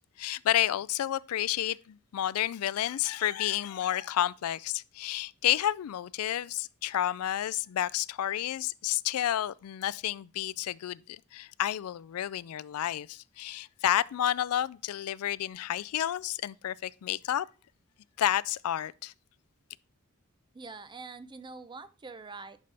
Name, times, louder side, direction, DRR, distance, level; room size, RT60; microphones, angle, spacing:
voice 1, 0.2-17.5 18.2-19.1, left 12 dB, 85° left, 0.3 m, -30 dB
voice 2, 20.5-22.6, right 4 dB, 20° right, 0.5 m, -44 dB
10.5 x 5.3 x 3.4 m
head